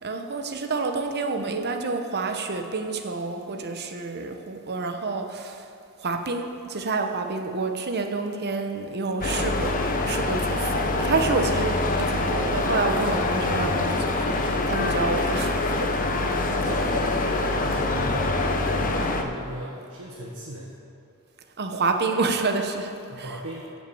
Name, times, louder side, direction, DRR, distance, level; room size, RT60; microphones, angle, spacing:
voice 1, 0.0-5.6 6.0-16.4 21.6-23.4, right 3 dB, 50° right, 5 dB, 1.0 m, -28 dB
sound 1, 9.2-19.2, left 2 dB, 40° left, 0.9 m, -25 dB
voice 2, 16.5-20.8 23.1-23.7, right 1 dB, 75° right, -3 dB, 1.5 m, -37 dB
15.5 x 6.3 x 7.0 m, 2.7 s
head